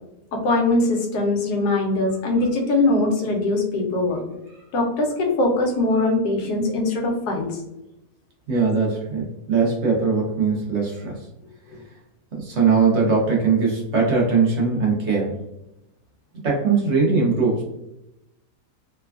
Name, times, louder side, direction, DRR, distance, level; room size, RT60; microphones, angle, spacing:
voice 1, 0.3-4.2 4.7-7.6, left 2 dB, 85° left, 1 dB, 1.2 m, -21 dB
voice 2, 8.5-11.1 12.3-15.4 16.4-17.6, right 4 dB, 55° right, -3 dB, 0.9 m, -20 dB
3.2 x 2.2 x 2.3 m, 0.90 s
omnidirectional pair, 1.7 m